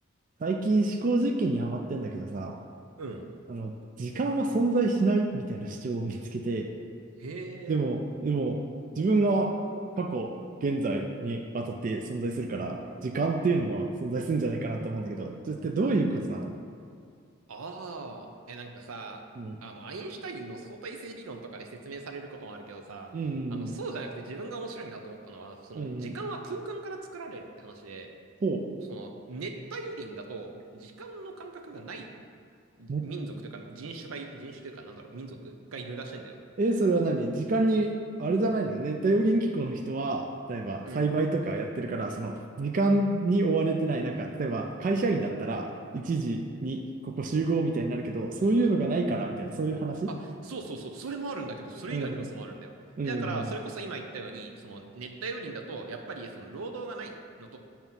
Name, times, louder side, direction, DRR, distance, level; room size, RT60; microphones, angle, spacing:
voice 1, 0.4-2.6 3.5-3.7 4.0-6.7 7.7-8.6 9.0-9.5 10.0-10.3 10.6-16.5 19.4-19.6 23.1-23.7 25.7-26.2 28.4-28.6 32.9-33.1 36.6-37.9 38.2-50.1 51.9-52.1 53.0-53.4, right 2 dB, 40° right, 3 dB, 0.3 m, -28 dB
voice 2, 7.2-7.8 17.5-19.2 19.6-23.1 23.5-28.1 28.9-32.1 32.8-36.4 40.8-41.0 50.1-52.7 53.0-57.6, right 3 dB, 85° right, 4 dB, 0.6 m, -39 dB
7.4 x 3.0 x 5.4 m, 2.2 s
head